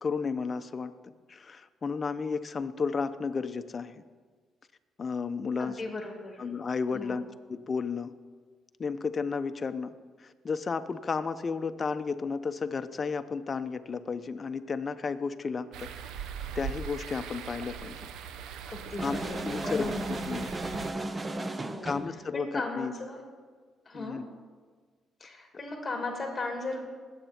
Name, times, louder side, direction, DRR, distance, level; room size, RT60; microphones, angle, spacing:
voice 1, 0.0-4.0 5.0-5.8 6.4-7.2 7.5-8.1 8.8-9.9 10.2-15.9 16.5-18.1 19.0-19.2 19.4-20.5 21.8-22.9 23.9-24.2, left 5 dB, 40° left, 10 dB, 0.7 m, -33 dB
voice 2, 5.6-6.5 6.9-7.2 18.7-20.1 21.6-22.0 22.3-23.2 23.9-24.2 25.2-26.8, left 2 dB, 20° left, 1 dB, 2.5 m, -36 dB
sound 1, 15.7-20.9, right 7 dB, 90° right, 0.7 m, -40 dB
sound 2, 19.0-22.1, right 2 dB, 25° right, 0.7 m, -35 dB
20.5 x 8.1 x 4.4 m, 1.5 s
cardioid pair, 90°, 0 cm